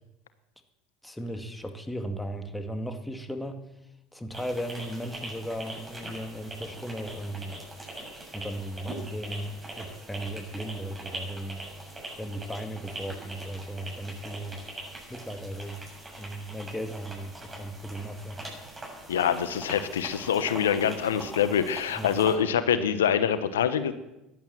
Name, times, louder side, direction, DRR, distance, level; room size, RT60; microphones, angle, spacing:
voice 1, 1.0-3.6 4.1-7.7 8.3-11.6 12.2-14.6 15.1-15.8 16.2-18.4 22.0-22.1, equal, 5° left, 7 dB, 2.0 m, -36 dB
sound 1, 4.3-22.3, right 1 dB, 15° right, 7.7 m, -42 dB
voice 2, 19.1-23.9, left 8 dB, 85° left, 12 dB, 0.9 m, -25 dB
15.0 x 11.5 x 7.6 m, 0.94 s
hypercardioid pair, 80°, 0 cm